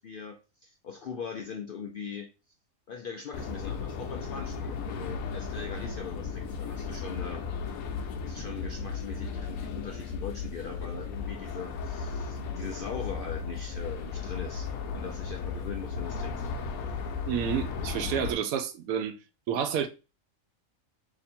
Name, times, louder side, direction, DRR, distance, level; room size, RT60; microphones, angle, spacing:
voice 1, 0.0-2.3 2.9-7.4 8.2-16.5 16.9-17.0, left 6 dB, 70° left, 0.5 m, -41 dB
sound 1, 3.3-18.3, left 5 dB, 85° left, 1.1 m, -35 dB
voice 2, 17.3-19.1 19.5-19.9, right 8 dB, 85° right, 1.1 m, -29 dB
3.0 x 2.6 x 4.2 m
omnidirectional pair, 1.5 m